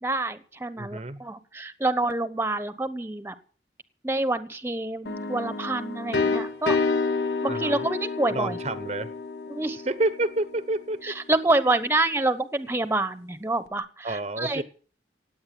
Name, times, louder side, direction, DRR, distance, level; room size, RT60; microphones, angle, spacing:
voice 1, 0.0-3.3 4.0-6.8 7.4-8.6 9.5-9.8 11.0-14.6, right 2 dB, 15° right, 12 dB, 1.0 m, -27 dB
voice 2, 0.8-1.2 7.5-7.9 8.3-9.1 9.8-11.2 14.0-14.6, right 2 dB, 35° right, 13 dB, 0.9 m, -29 dB
sound 1, 5.1-10.7, left 4 dB, 70° left, 1.7 m, -29 dB
17.5 x 8.8 x 7.7 m, 0.41 s
head